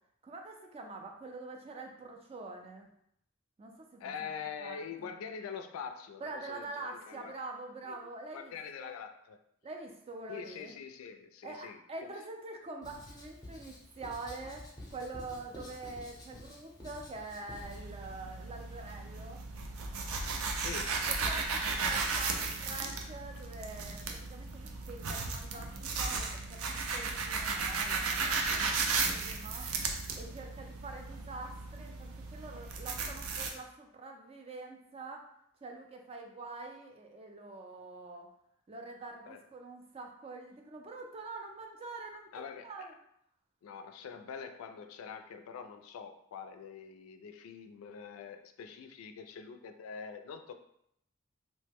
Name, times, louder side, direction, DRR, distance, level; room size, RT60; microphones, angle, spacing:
voice 1, 0.2-2.9 3.6-4.3 4.6-5.1 6.2-9.0 9.6-10.8 11.4-19.4 21.3-29.7 30.1-35.3 35.6-38.3 38.7-42.9, right 3 dB, 30° right, 3 dB, 0.3 m, -45 dB
voice 2, 4.0-7.3 7.9-8.0 8.3-9.4 10.3-11.8 20.6-20.9 39.2-39.4 42.3-42.9 43.6-50.5, left 6 dB, 85° left, 7 dB, 0.3 m, -44 dB
Writing, 12.8-17.8, left 1 dB, 20° left, 0.6 m, -49 dB
sound 1, 17.6-33.5, right 4 dB, 90° right, 0.4 m, -35 dB
3.0 x 2.1 x 3.3 m, 0.73 s
head